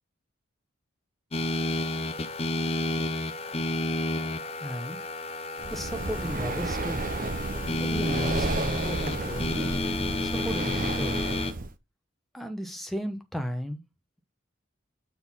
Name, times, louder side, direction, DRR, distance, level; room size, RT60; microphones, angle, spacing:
sound 1, 1.3-11.5, left 2 dB, 30° left, 0.7 m, -31 dB
voice 1, 4.6-5.0 5.7-7.1 7.8-9.5 10.2-11.3 12.3-13.8, equal, ahead, 1.0 m, -35 dB
Breathing, 5.6-11.7, right 3 dB, 40° right, 0.7 m, -32 dB
6.9 x 4.2 x 5.4 m
head